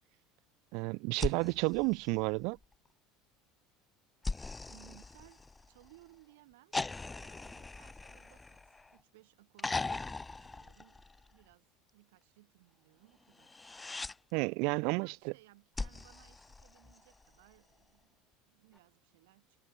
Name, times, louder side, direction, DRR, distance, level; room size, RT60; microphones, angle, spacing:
voice 1, 0.7-2.6 14.3-15.3, right 30 dB, 70° right, 0.5 m, -31 dB
sound 1, 1.1-2.7 4.2-5.9 6.7-9.0 9.6-11.4 13.4-14.2 15.8-17.2 18.8-18.9, left 3 dB, 15° left, 1.2 m, -40 dB
voice 2, 4.6-6.8 7.2-13.6 14.8-18.2 18.5-19.6, right 19 dB, 85° right, 5.9 m, -62 dB
supercardioid pair, 115°, 0 cm